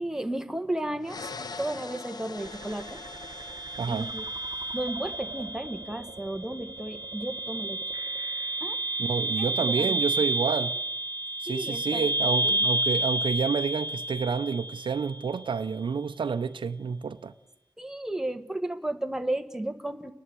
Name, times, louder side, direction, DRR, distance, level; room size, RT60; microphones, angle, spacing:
voice 1, 0.0-1.3 1.6-3.0 3.9-4.3 4.7-7.8 8.6-8.8 9.4-10.2 11.5-12.7 17.8-20.1, right 1 dB, 5° right, 1.4 m, -34 dB
sound 1, 1.0-4.9, left 4 dB, 55° left, 1.0 m, -42 dB
sound 2, 2.4-15.4, right 1 dB, 55° right, 1.2 m, -31 dB
voice 2, 3.8-4.1 9.0-10.7 11.4-17.3, right 5 dB, 80° right, 0.8 m, -29 dB
29.5 x 11.5 x 8.4 m
wide cardioid pair, 120°, 8 cm